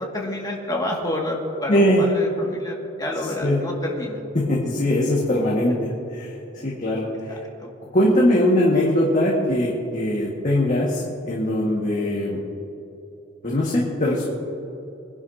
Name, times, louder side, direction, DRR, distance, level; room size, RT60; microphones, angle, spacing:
voice 1, 0.0-4.2 7.6-7.7, left 1 dB, 20° left, -2 dB, 2.0 m, -29 dB
voice 2, 1.7-2.1 3.2-3.6 4.3-6.3 6.6-7.4 7.8-12.4 13.4-14.3, left 1 dB, 35° left, -4 dB, 1.7 m, -21 dB
24.0 x 11.0 x 2.8 m, 3.0 s
head